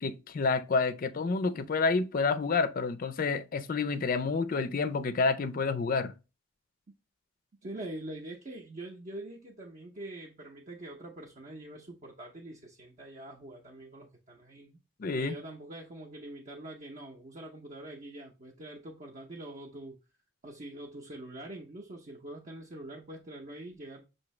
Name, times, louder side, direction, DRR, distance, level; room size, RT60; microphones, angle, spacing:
voice 1, 0.0-6.1 15.0-15.4, left 4 dB, 40° left, 0.4 m, -29 dB
voice 2, 7.6-14.8 15.1-20.0 20.4-24.1, right 1 dB, 40° right, 0.7 m, -44 dB
5.9 x 2.7 x 3.1 m
head